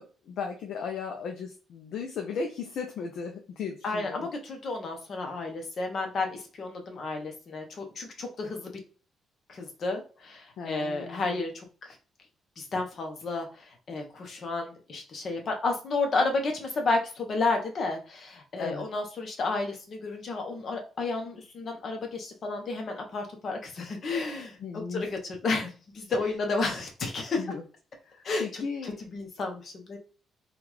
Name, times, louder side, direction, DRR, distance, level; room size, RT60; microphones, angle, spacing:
voice 1, 0.0-4.3 10.6-11.4 18.6-18.9 24.6-25.1 27.4-27.6 28.1-29.0, left 5 dB, 75° left, 3 dB, 0.5 m, -36 dB
voice 2, 3.8-8.7 9.5-11.6 12.6-24.6 24.9-25.7 25.9-27.4 28.2-30.0, left 3 dB, 55° left, 3 dB, 0.9 m, -31 dB
3.7 x 2.4 x 3.1 m, 0.38 s
cardioid pair, 90°, 0 cm